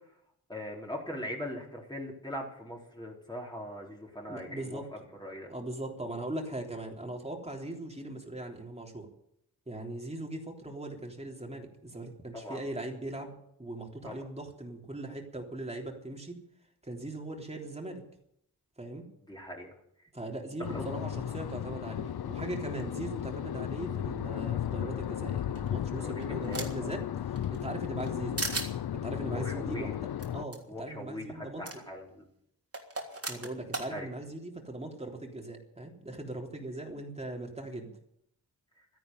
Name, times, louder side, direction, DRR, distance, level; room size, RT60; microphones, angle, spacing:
voice 1, 0.5-4.8 5.2-5.5 12.3-12.6 14.0-14.2 19.3-19.7 20.7-20.9 23.8-23.9 26.0-27.0 29.3-29.9 30.7-32.2 33.9-34.1, equal, 10° left, -2 dB, 4.2 m, -41 dB
voice 2, 4.3-4.8 5.5-9.1 9.7-16.4 16.8-18.0 18.8-19.0 20.1-28.6 28.9-31.6 33.3-37.9, right 2 dB, 15° right, 1 dB, 3.5 m, -40 dB
sound 1, 20.6-30.4, left 10 dB, 75° left, 0.6 m, -35 dB
sound 2, 25.5-26.9 27.4-28.1 28.4-28.7 30.2-30.3 30.5-30.6 31.6-31.8 32.7-33.9, right 2 dB, 40° right, 3.4 m, -36 dB
13.0 x 11.0 x 9.3 m, 0.72 s
wide cardioid pair, 70°, 38 cm